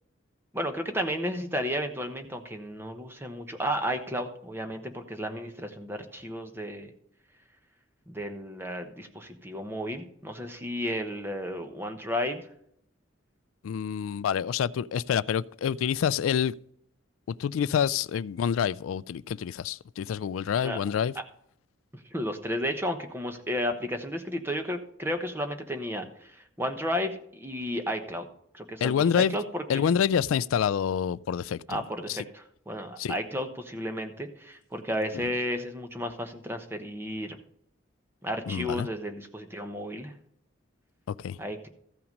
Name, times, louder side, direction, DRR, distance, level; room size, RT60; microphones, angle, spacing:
voice 1, 0.5-6.9 8.1-12.5 20.6-20.8 21.1-21.2 21.9-28.3 28.5-29.8 31.7-37.4 38.2-40.1 41.4-41.7, equal, 10° right, 1.0 m, -33 dB
voice 2, 13.6-16.5 17.4-21.1 28.8-29.4 29.7-31.8 32.1-32.2 33.0-33.1 38.5-38.9 41.1-41.4, left 8 dB, 90° left, 0.3 m, -27 dB
14.5 x 5.7 x 5.3 m
head